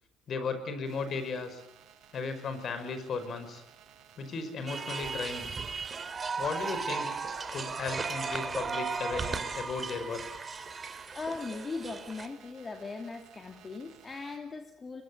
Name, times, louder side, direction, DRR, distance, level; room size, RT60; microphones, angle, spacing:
voice 1, 0.3-1.6 2.1-3.6 4.2-5.5 6.4-7.2 7.5-10.2, left 4 dB, 50° left, 10 dB, 5.2 m, -35 dB
sound 1, 0.8-14.4, right 9 dB, 65° right, 7.3 m, -57 dB
sound 2, 4.7-12.3, right 4 dB, 30° right, 2.8 m, -36 dB
voice 2, 11.1-15.0, left 3 dB, 30° left, 4 dB, 2.7 m, -39 dB
23.0 x 22.0 x 8.8 m, 0.83 s
supercardioid pair, 80°, 0 cm